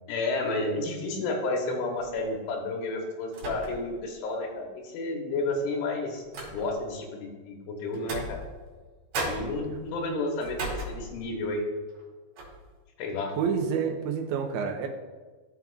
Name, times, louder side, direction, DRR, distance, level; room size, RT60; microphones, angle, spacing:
voice 1, 0.1-6.2 6.5-8.4 9.2-11.7 13.0-13.3, left 2 dB, 85° left, 1 dB, 3.5 m, -31 dB
sound 1, 2.0-2.3 3.3-4.0 4.4-4.5 5.5-6.9 7.9-8.9 9.1-11.5 11.9-12.0 12.4-12.7, right 2 dB, 60° right, 3.4 m, -37 dB
voice 2, 13.4-14.9, right 6 dB, 80° right, 2 dB, 2.4 m, -28 dB
14.0 x 5.3 x 2.4 m, 1.3 s
omnidirectional pair, 5.6 m